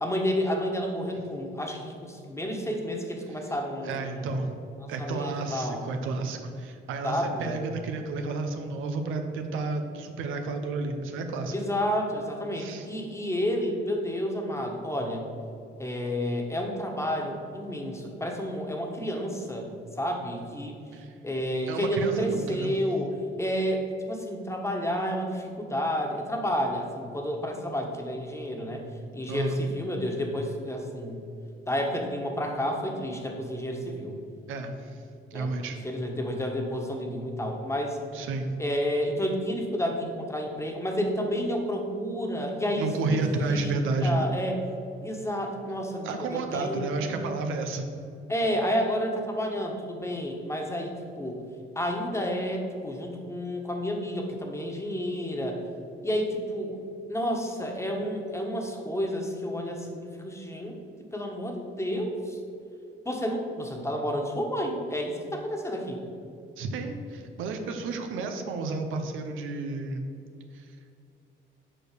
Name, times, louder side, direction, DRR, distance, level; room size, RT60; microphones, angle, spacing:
voice 1, 0.0-4.4 5.0-5.8 7.0-7.5 11.5-15.2 15.8-19.7 20.0-20.7 21.2-23.1 23.4-28.8 29.1-31.2 31.7-34.1 35.3-35.5 35.8-38.0 38.6-43.8 44.0-44.6 45.0-47.1 48.3-51.4 51.7-55.6 56.0-56.8 57.1-60.8 61.1-62.4 63.0-66.0, equal, 15° left, 2 dB, 1.4 m, -30 dB
voice 2, 3.8-4.5 4.9-11.5 12.6-12.9 20.9-21.1 21.7-22.7 29.3-29.6 34.5-35.0 35.3-35.8 38.1-38.5 42.7-44.3 46.0-47.9 66.6-70.1 70.5-70.7, right 3 dB, 90° right, 5 dB, 0.9 m, -31 dB
7.6 x 4.6 x 6.8 m, 2.5 s
cardioid pair, 90°, 20 cm